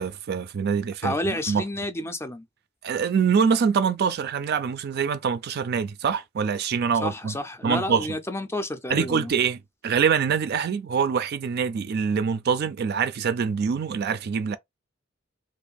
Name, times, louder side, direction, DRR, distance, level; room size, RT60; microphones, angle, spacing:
voice 1, 0.0-1.6 2.8-7.4 7.6-8.1 8.9-14.6, right 6 dB, 50° right, 0.4 m, -25 dB
voice 2, 1.0-2.5 7.0-9.3, left 1 dB, 15° left, 0.4 m, -30 dB
2.6 x 2.5 x 3.9 m
head